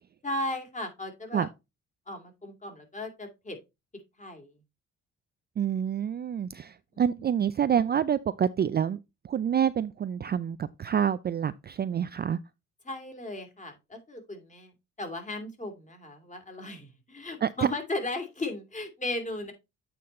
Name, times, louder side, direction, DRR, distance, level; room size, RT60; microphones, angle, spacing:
voice 1, 0.2-1.5 2.1-3.6 4.2-4.6 6.9-7.2 12.8-14.7 15.0-19.5, left 2 dB, 25° left, 2.7 m, -36 dB
voice 2, 5.6-9.0 9.2-12.4 17.4-17.5, right 8 dB, 35° right, 0.4 m, -27 dB
8.5 x 4.0 x 4.2 m
cardioid pair, 90°, 30 cm